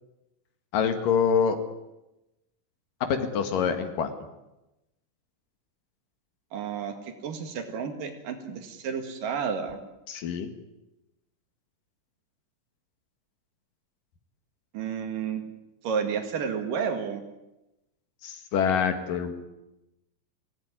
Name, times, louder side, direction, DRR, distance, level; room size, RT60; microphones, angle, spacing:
voice 1, 0.7-1.6 3.1-4.1 10.1-10.5 18.2-19.3, left 7 dB, 90° left, 7 dB, 3.6 m, -25 dB
voice 2, 6.5-9.8 14.7-15.4 15.8-17.2, right 6 dB, 85° right, 5 dB, 3.8 m, -31 dB
27.5 x 17.5 x 9.8 m, 0.96 s
omnidirectional pair, 3.7 m